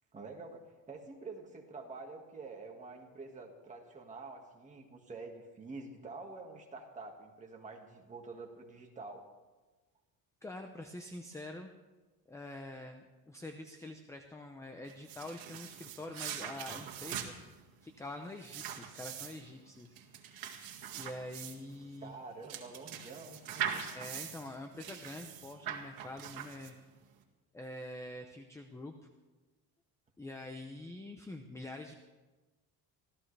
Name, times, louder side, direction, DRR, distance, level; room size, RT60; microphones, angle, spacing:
voice 1, 0.1-9.3 22.0-23.8, right 3 dB, 20° right, 1 dB, 1.8 m, -47 dB
voice 2, 10.4-11.7 12.3-20.0 20.9-22.1 23.9-26.7 27.5-28.9 30.2-31.9, left 1 dB, 10° left, 5 dB, 0.6 m, -46 dB
sound 1, 14.9-27.0, right 9 dB, 70° right, 1.9 m, -42 dB
25.0 x 15.5 x 3.3 m, 1.2 s
cardioid pair, 175°, 36 cm